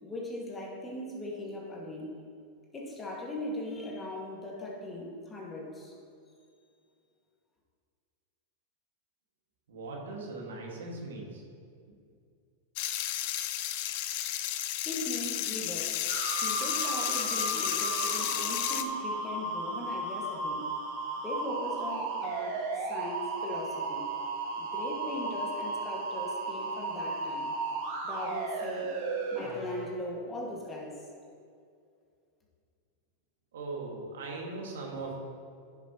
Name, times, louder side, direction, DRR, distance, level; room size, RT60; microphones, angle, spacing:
voice 1, 0.0-2.1 2.7-5.9 14.8-15.9 16.4-20.7 21.2-22.6 22.9-24.0 24.6-27.6 28.0-29.0 29.3-31.0, left 2 dB, 20° left, -3 dB, 1.9 m, -39 dB
voice 2, 9.7-11.4 33.5-35.1, right 3 dB, 80° right, -1 dB, 1.8 m, -39 dB
sound 1, 12.8-18.8, left 12 dB, 60° left, 0.5 m, -32 dB
sound 2, 16.1-29.9, right 3 dB, 60° right, 1.4 m, -35 dB
Wind instrument woodwind instrument, 23.2-27.1, left 1 dB, 75° left, 2.1 m, -44 dB
10.0 x 6.7 x 3.0 m, 2.3 s
hypercardioid pair, 110°, 0 cm